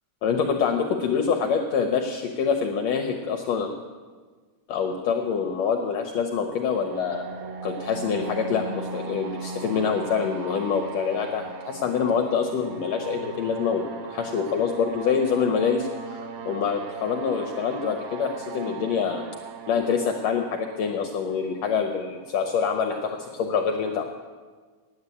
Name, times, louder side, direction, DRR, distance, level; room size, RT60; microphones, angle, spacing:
voice 1, 0.2-3.7 4.7-7.2 7.6-19.2 19.7-24.0, left 6 dB, 75° left, 4 dB, 1.7 m, -26 dB
sound 1, 6.5-22.3, right 4 dB, 70° right, 1.5 m, -38 dB
9.5 x 8.3 x 9.6 m, 1.5 s
omnidirectional pair, 3.6 m